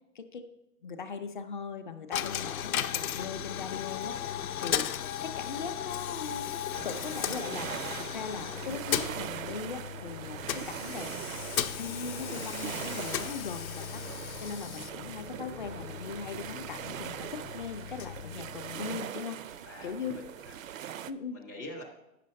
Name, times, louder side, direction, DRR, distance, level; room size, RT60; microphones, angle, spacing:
voice 1, 0.1-0.5 0.8-4.2 4.6-4.9 5.2-11.1 11.5-14.0 14.4-20.2 21.1-21.4, left 5 dB, 35° left, 7 dB, 0.5 m, -40 dB
Coin (dropping), 2.1-19.0, left 10 dB, 80° left, 0.7 m, -36 dB
sound 1, 6.7-21.1, right 10 dB, 70° right, 0.6 m, -41 dB
voice 2, 8.1-8.6 19.6-21.0 21.3-21.8, left 1 dB, 15° right, -1 dB, 0.4 m, -46 dB
8.2 x 6.7 x 5.2 m, 0.91 s
hypercardioid pair, 165°, 42 cm